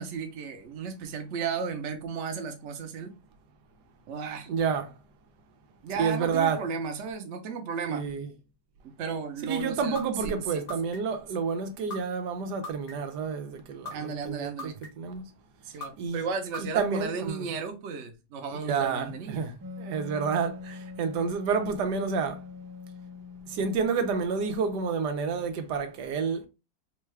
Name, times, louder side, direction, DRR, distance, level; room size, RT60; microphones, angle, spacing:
voice 1, 0.0-3.1 4.1-4.5 5.8-8.0 9.0-10.6 13.9-14.8 15.6-19.5, right 5 dB, 55° right, 0.9 m, -34 dB
voice 2, 4.5-4.9 6.0-6.6 7.9-8.3 9.4-15.3 16.0-16.2 16.6-17.5 18.6-22.5 23.5-26.5, right 5 dB, 85° right, 1.3 m, -29 dB
sound 1, 10.0-10.1 10.7-11.2 11.9-12.0 12.6-13.2 13.9-14.0 14.6-15.1 15.8-15.9 16.5-17.1, left 2 dB, 55° left, 1.5 m, -38 dB
Wind instrument woodwind instrument, 19.6-25.0, left 5 dB, 30° right, 0.3 m, -43 dB
4.5 x 2.3 x 3.2 m
omnidirectional pair, 1.8 m